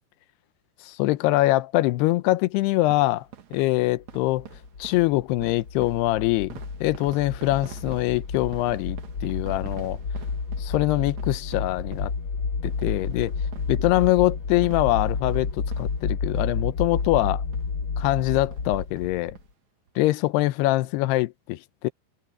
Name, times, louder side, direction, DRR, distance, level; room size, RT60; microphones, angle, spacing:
voice 1, 0.9-3.2 3.5-4.5 4.8-10.0 10.6-12.1 12.6-13.3 13.7-15.5 15.8-17.4 18.0-19.4 20.0-21.9, left 18 dB, 80° left, 2.8 m, -23 dB
sound 1, 2.8-16.7 16.9-17.1 17.5-17.6 18.0-18.2 18.5-19.5 19.9-20.0 20.2-20.3, right 11 dB, 55° right, 2.3 m, -47 dB
sound 2, 4.1-19.4, left 5 dB, 65° left, 1.2 m, -30 dB
omnidirectional pair, 4.8 m